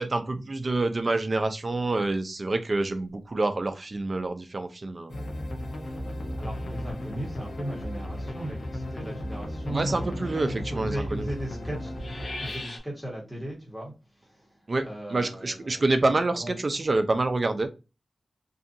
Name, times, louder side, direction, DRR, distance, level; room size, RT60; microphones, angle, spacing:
voice 1, 0.0-5.1 9.7-11.3 14.7-17.7, right 2 dB, 40° right, 0.4 m, -27 dB
sound 1, 5.1-12.8, left 1 dB, 65° left, 0.7 m, -35 dB
voice 2, 6.0-15.9 16.3-16.9, right 1 dB, 5° right, 1.2 m, -38 dB
2.7 x 2.5 x 2.5 m
wide cardioid pair, 95°, 0 cm